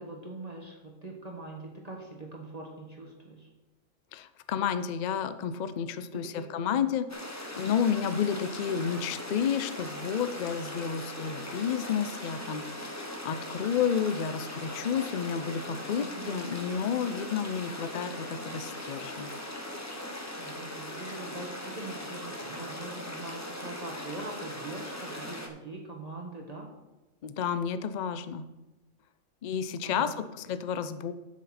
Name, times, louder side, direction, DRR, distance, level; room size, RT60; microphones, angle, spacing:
voice 1, 0.0-3.5 6.3-6.8 16.0-16.4 20.4-26.7 29.8-30.1, right 2 dB, 30° right, 0 dB, 1.3 m, -42 dB
voice 2, 4.1-19.3 27.2-28.5 29.4-31.1, left 7 dB, 65° left, 12 dB, 0.4 m, -31 dB
sound 1, 7.1-25.5, left 1 dB, 15° left, 0.9 m, -39 dB
12.0 x 6.2 x 4.2 m, 1.1 s
omnidirectional pair, 1.4 m